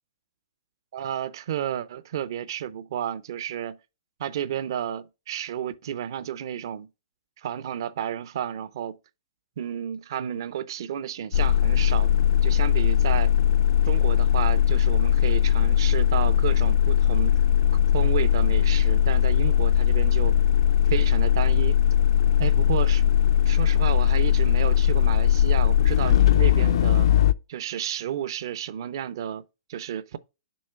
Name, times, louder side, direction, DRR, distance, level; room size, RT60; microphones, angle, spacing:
voice 1, 0.9-3.8 4.2-6.9 7.4-9.0 9.6-12.1 12.4-13.3 13.8-17.4 17.9-20.4 20.9-21.8 22.4-23.0 23.5-27.1 27.5-29.4 29.7-30.2, right 10 dB, 55° right, 0.5 m, -31 dB
sound 1, 11.3-27.3, left 10 dB, 70° left, 0.4 m, -20 dB
7.0 x 3.0 x 5.6 m
hypercardioid pair, 155°, 3 cm